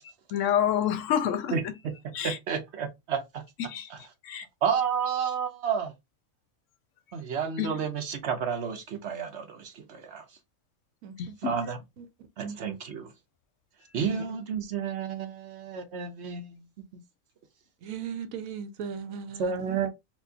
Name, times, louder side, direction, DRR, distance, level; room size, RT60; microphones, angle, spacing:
voice 1, 0.0-1.8 2.1-2.4 3.7-4.5 7.6-7.9 11.2-11.5, left 9 dB, 70° left, 0.9 m, -29 dB
voice 2, 1.5-1.9 2.2-3.4 3.9-4.0 4.6-5.9 7.1-10.2 11.4-11.8 12.4-12.7 13.9-16.6 16.9-17.0 19.4-19.9, right 7 dB, 60° right, 0.9 m, -31 dB
voice 3, 17.8-19.9, right 7 dB, 80° right, 1.0 m, -37 dB
4.5 x 2.3 x 2.7 m
omnidirectional pair, 1.4 m